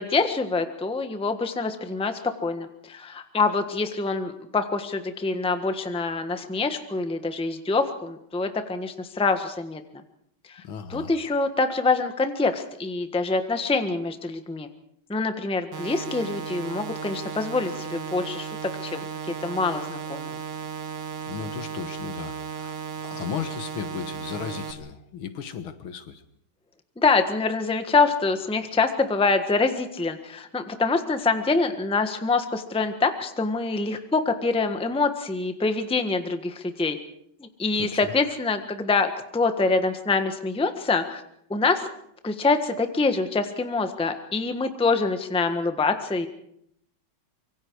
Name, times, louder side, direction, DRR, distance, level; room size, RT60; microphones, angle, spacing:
voice 1, 0.0-9.8 10.5-10.6 10.9-14.7 15.1-18.5 18.8-20.4 27.0-37.0 37.4-41.2 41.5-41.9 42.2-46.3, left 3 dB, 5° left, 7 dB, 1.1 m, -25 dB
voice 2, 10.6-11.1 21.3-22.7 23.0-26.2 37.8-38.1, left 8 dB, 70° left, 10 dB, 2.0 m, -35 dB
sound 1, 15.7-24.7, right 7 dB, 55° right, 2.3 m, -35 dB
25.5 x 23.5 x 4.7 m, 0.72 s
omnidirectional pair, 2.4 m